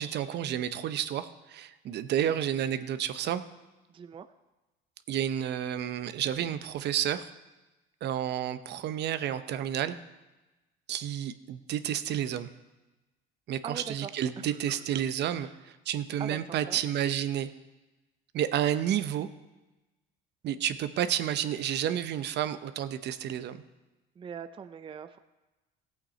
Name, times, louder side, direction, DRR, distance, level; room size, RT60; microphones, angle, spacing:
voice 1, 0.0-3.4 5.1-7.3 8.0-9.9 10.9-12.5 13.5-17.5 18.3-19.3 20.4-23.6, right 10 dB, 55° right, 11 dB, 0.7 m, -30 dB
voice 2, 3.9-4.3 13.6-14.1 14.4-15.0 15.3-15.6 16.2-16.8 24.2-25.2, right 7 dB, 25° right, 10 dB, 0.5 m, -42 dB
15.0 x 8.3 x 4.3 m, 1.1 s
supercardioid pair, 95°, 21 cm